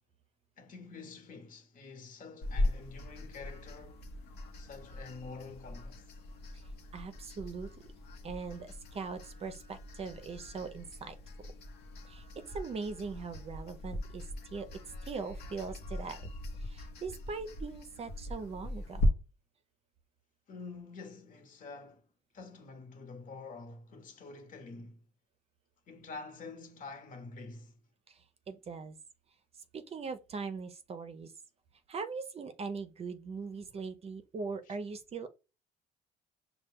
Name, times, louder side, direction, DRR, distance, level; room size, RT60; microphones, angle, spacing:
voice 1, 0.6-4.0 4.6-6.1 20.5-22.1 22.3-25.0 25.9-27.8 34.6-34.8, left 4 dB, 50° left, 1.1 m, -47 dB
sound 1, 2.4-19.1, left 1 dB, 80° left, 0.9 m, -40 dB
voice 2, 6.9-7.7 8.2-11.1 12.1-14.2 14.5-14.7 15.1-16.2 16.7-19.1 28.5-29.0 29.7-31.3 31.9-35.3, right 4 dB, 35° right, 0.6 m, -40 dB
5.5 x 2.3 x 3.5 m
cardioid pair, 110°, 17 cm